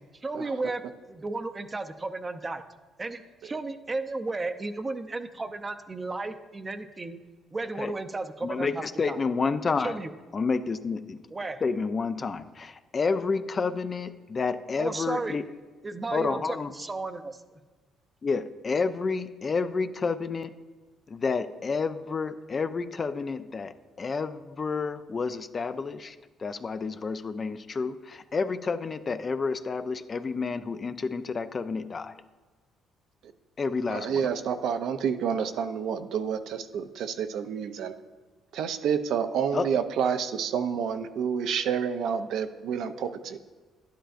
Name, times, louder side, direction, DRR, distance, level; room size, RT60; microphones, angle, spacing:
voice 1, 0.1-0.8 1.1-2.6 3.0-7.2 7.5-9.2 9.8-10.1 11.3-11.6 14.8-15.3 15.8-17.4, right 3 dB, 20° right, 8 dB, 0.6 m, -34 dB
voice 2, 8.4-10.0 10.3-11.2 11.6-15.4 16.1-16.7 18.2-20.5 21.1-32.2 33.6-34.3 39.5-39.7, left 4 dB, 35° left, 11 dB, 0.4 m, -30 dB
voice 3, 33.9-37.9 38.5-43.4, right 7 dB, 75° right, 9 dB, 0.5 m, -29 dB
11.0 x 10.0 x 2.5 m, 1.3 s
cardioid pair, 105°, 0 cm